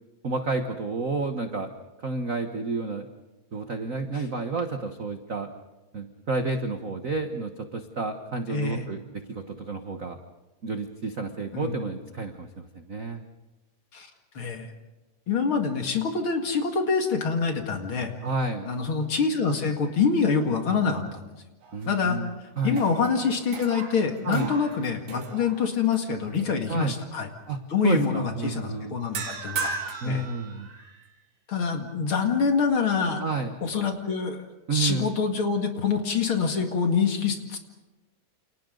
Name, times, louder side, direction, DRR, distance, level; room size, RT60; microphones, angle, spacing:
voice 1, 0.2-1.7 2.0-3.1 3.5-5.5 5.9-10.2 10.6-13.2 18.2-18.7 21.7-22.8 24.2-24.5 26.7-26.9 27.5-29.0 30.0-30.7 33.2-33.6 34.7-35.1, right 3 dB, 50° right, 6 dB, 1.0 m, -30 dB
voice 2, 8.5-8.9 11.5-11.7 13.9-14.1 14.3-14.7 15.3-18.1 18.7-21.3 21.9-22.2 22.6-27.3 27.7-29.7 30.0-30.3 31.5-33.2 33.6-34.4 34.7-37.6, left 5 dB, 45° left, 4 dB, 2.7 m, -26 dB
sound 1, 21.6-22.3 22.7-26.0 26.4-26.7 29.1-31.1, right 4 dB, 90° right, 3.7 m, -37 dB
29.0 x 29.0 x 4.0 m, 1.1 s
omnidirectional pair, 3.3 m